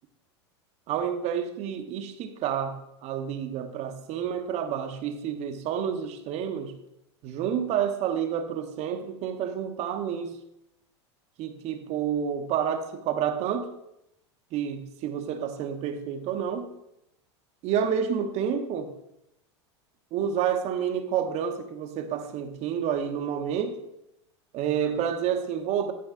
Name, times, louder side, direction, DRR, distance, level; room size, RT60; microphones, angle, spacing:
voice 1, 0.9-6.7 7.2-10.3 11.4-13.7 14.5-16.7 17.6-18.9 20.1-23.8 24.5-25.9, right 8 dB, 50° right, 7 dB, 1.0 m, -29 dB
11.0 x 5.3 x 3.7 m, 0.83 s
hypercardioid pair, 95°, 15 cm